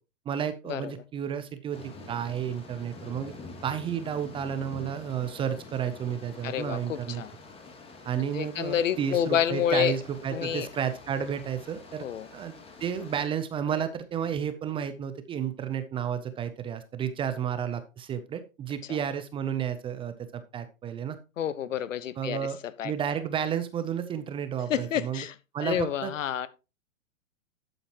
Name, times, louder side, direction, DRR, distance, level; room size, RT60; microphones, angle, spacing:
voice 1, 0.3-3.3 3.6-7.2 8.0-12.1 12.3-12.5 12.8-21.2 22.2-22.6 22.8-25.3 25.5-26.1, right 8 dB, 15° right, 0.5 m, -32 dB
sound 1, 1.7-13.3, left 3 dB, 15° left, 2.1 m, -47 dB
voice 2, 6.4-7.3 8.2-9.9 10.3-10.7 12.0-12.3 18.9-19.0 21.4-22.5 22.8-22.9 24.7-25.3 25.6-26.5, left 9 dB, 70° left, 1.1 m, -29 dB
11.5 x 8.0 x 2.9 m
hypercardioid pair, 120°, 39 cm